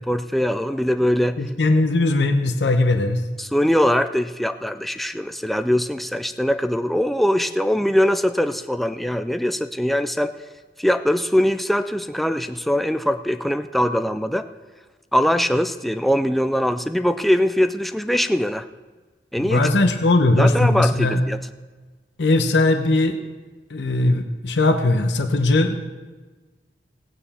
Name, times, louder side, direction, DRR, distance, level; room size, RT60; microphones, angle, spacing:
voice 1, 0.1-1.4 3.4-10.3 10.8-14.5 15.1-18.7 19.3-19.7 20.4-21.4, equal, ahead, 9 dB, 0.3 m, -22 dB
voice 2, 1.4-3.2 19.4-21.2 22.2-23.2 23.7-25.8, left 2 dB, 80° left, 6 dB, 0.9 m, -19 dB
17.0 x 9.0 x 4.3 m, 1.3 s
head